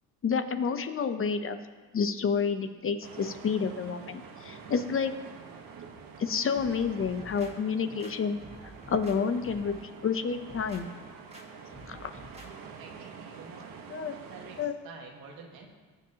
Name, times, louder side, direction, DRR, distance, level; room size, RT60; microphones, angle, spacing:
voice 1, 0.2-1.6 1.9-5.1 6.2-8.4 8.9-10.9 11.9-12.1 13.9-14.2 14.6-14.7, left 6 dB, 40° left, 9 dB, 0.8 m, -29 dB
sound 1, 3.0-14.7, right 6 dB, 70° right, 1.3 m, -47 dB
sound 2, 6.6-7.5 8.0-9.2 9.4-9.8 10.3-10.8 11.3-11.4 11.7-12.5 12.9-13.0, equal, 20° right, 1.8 m, -49 dB
voice 2, 12.8-13.8 14.3-15.7, right 5 dB, 90° right, 1 dB, 1.8 m, -48 dB
19.0 x 7.6 x 2.9 m, 1.4 s
cardioid pair, 100°, 35 cm